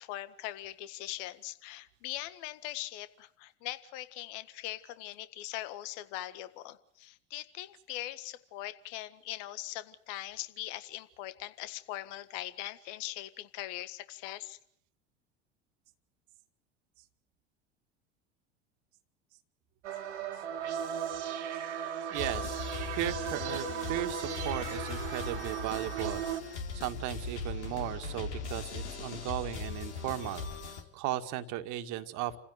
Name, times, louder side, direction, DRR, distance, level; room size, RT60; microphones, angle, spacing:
voice 1, 0.0-14.6, left 15 dB, 55° left, 13 dB, 1.7 m, -41 dB
sound 1, 19.8-26.4, right 8 dB, 75° right, 2.2 m, -36 dB
sound 2, 22.1-30.8, left 4 dB, 75° left, 4.2 m, -39 dB
voice 2, 22.1-22.6 23.0-32.4, right 13 dB, 55° right, 9 dB, 2.1 m, -36 dB
29.0 x 16.0 x 8.1 m, 0.66 s
hypercardioid pair, 75°, 35 cm